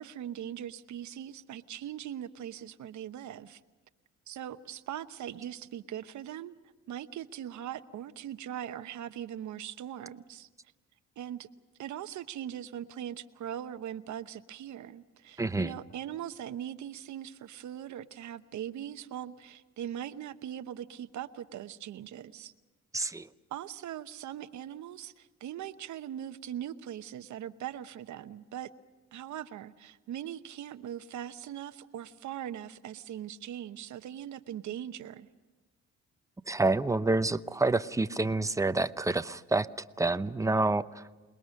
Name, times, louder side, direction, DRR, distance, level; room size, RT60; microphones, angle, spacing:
voice 1, 0.0-3.6 4.3-6.5 6.9-10.5 11.2-11.5 11.8-22.5 23.0-23.1 23.5-28.7 29.1-35.3, right 10 dB, 70° right, 12 dB, 1.0 m, -40 dB
voice 2, 15.4-15.7 22.9-23.3 36.5-39.7 40.0-41.0, right 2 dB, 10° right, 12 dB, 0.7 m, -28 dB
28.0 x 20.5 x 6.4 m, 1.2 s
cardioid pair, 90°, 30 cm